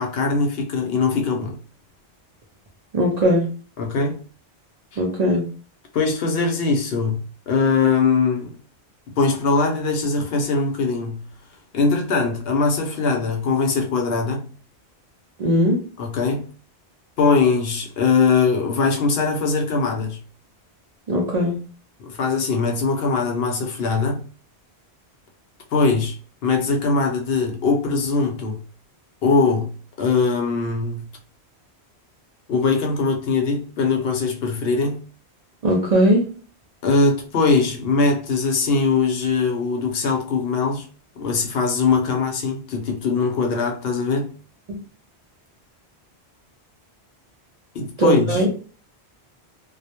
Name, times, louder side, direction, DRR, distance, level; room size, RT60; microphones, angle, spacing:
voice 1, 0.0-1.6 3.8-4.2 4.9-5.0 5.9-8.5 9.2-11.3 11.7-14.5 16.0-16.5 17.2-20.2 22.0-24.2 25.7-26.2 26.4-28.6 29.2-31.1 32.5-35.0 36.8-40.9 41.2-44.3 47.7-48.4, left 4 dB, 70° left, 0.8 m, -21 dB
voice 2, 2.9-3.5 5.0-5.5 15.4-15.8 21.1-21.6 35.6-36.2 44.7-44.8 48.0-48.5, equal, 50° right, 0.5 m, -19 dB
2.2 x 2.0 x 2.8 m
omnidirectional pair, 1.1 m